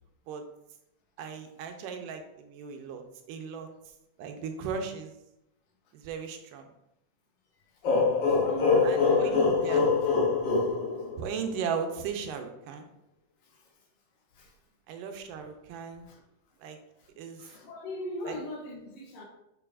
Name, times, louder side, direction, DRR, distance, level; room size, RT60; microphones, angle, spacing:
voice 1, 1.2-3.7 4.2-5.1 5.9-6.7 8.8-9.9 11.2-12.9 14.9-16.1 16.6-16.8 17.2-17.5 18.2-18.4, right 6 dB, 90° right, 5 dB, 2.3 m, -37 dB
sound 1, 7.8-11.6, left 4 dB, 70° left, 1.1 m, -24 dB
voice 2, 7.9-9.6 13.5-13.7 14.4-14.5 15.7-15.8 16.1-16.2 17.0-17.1 17.4-19.2, left 1 dB, 90° left, 0 dB, 2.9 m, -40 dB
6.8 x 6.4 x 2.5 m, 0.84 s
omnidirectional pair, 3.8 m